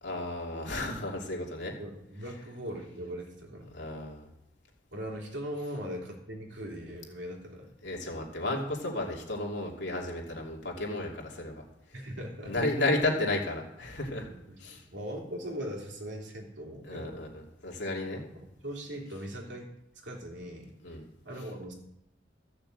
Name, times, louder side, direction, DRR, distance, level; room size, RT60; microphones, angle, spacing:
voice 1, 0.0-1.7 3.7-4.3 7.8-11.6 12.4-14.3 14.6-14.8 16.8-18.2 20.8-21.0, left 2 dB, 70° left, -1 dB, 2.8 m, -33 dB
voice 2, 1.8-3.7 4.9-7.7 11.9-13.0 14.3-14.6 14.9-17.2 18.1-19.7 19.9-21.0 21.2-21.7, equal, 75° right, -1 dB, 3.2 m, -40 dB
14.5 x 6.8 x 7.8 m, 0.85 s
head